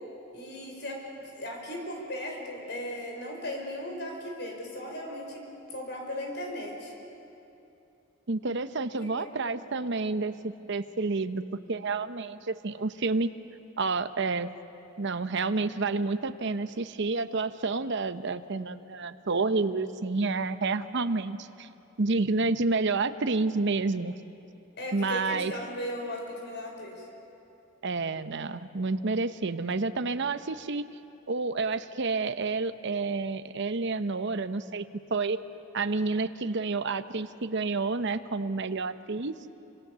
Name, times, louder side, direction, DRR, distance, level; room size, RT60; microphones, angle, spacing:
voice 1, 0.3-6.9 9.1-9.6 24.8-26.9, left 1 dB, 60° left, 1 dB, 5.5 m, -37 dB
voice 2, 8.3-11.4 11.7-13.3 13.8-14.5 15.0-21.7 22.0-24.1 24.9-25.5 27.8-30.9 31.3-34.9 35.1-35.4 35.7-39.3, right 3 dB, 60° right, 11 dB, 0.8 m, -29 dB
27.5 x 25.5 x 6.9 m, 2.8 s
head